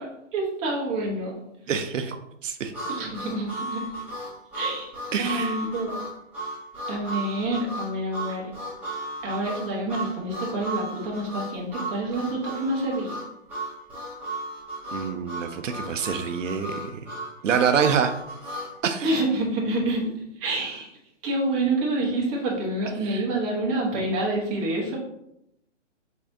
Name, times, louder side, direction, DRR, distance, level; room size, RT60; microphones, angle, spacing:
voice 1, 0.3-1.3 2.9-3.8 4.5-4.9 5.2-6.1 6.9-8.4 9.2-13.2 19.0-20.1 20.4-20.9 21.2-25.0, right 2 dB, 25° right, -3 dB, 1.2 m, -27 dB
voice 2, 1.7-2.2 2.4-2.7 5.1-5.6 14.9-17.1 17.4-18.1 18.8-19.1 23.0-23.2, right 7 dB, 90° right, 7 dB, 0.6 m, -26 dB
Harmonica, 2.7-18.7, right 1 dB, 5° right, 1.6 m, -35 dB
4.8 x 3.5 x 2.7 m, 0.81 s
hypercardioid pair, 150°, 37 cm